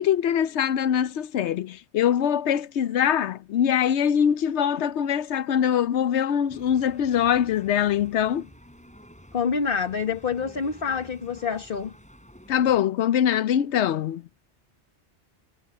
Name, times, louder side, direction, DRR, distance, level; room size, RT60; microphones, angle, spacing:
voice 1, 0.0-8.5 12.5-14.2, left 9 dB, 85° left, 1.0 m, -23 dB
sound 1, 6.5-12.8, equal, 5° left, 6.5 m, -50 dB
voice 2, 9.3-11.9, left 6 dB, 55° left, 1.4 m, -27 dB
omnidirectional pair, 1.1 m